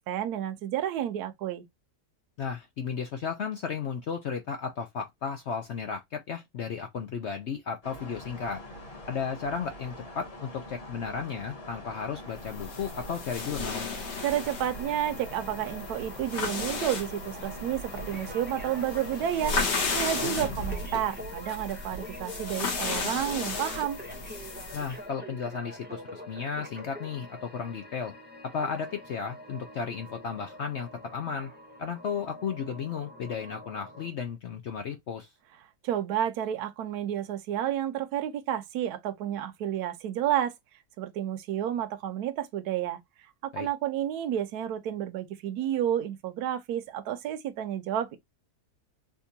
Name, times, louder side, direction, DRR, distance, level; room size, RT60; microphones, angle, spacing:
voice 1, 0.1-1.6 14.2-24.0 35.8-40.5 41.0-43.0 43.4-48.2, right 11 dB, 70° right, 1.1 m, -31 dB
voice 2, 2.4-8.6 9.1-13.9 20.1-20.3 24.7-28.1 28.5-31.5 31.8-35.3 43.5-43.7, left 6 dB, 70° left, 0.6 m, -34 dB
sound 1, 7.8-20.8, left 1 dB, 25° left, 1.2 m, -44 dB
sound 2, 12.4-25.0, left 3 dB, 50° left, 1.0 m, -34 dB
sound 3, 14.1-34.1, left 1 dB, 10° right, 0.4 m, -45 dB
3.6 x 2.6 x 2.7 m
omnidirectional pair, 1.8 m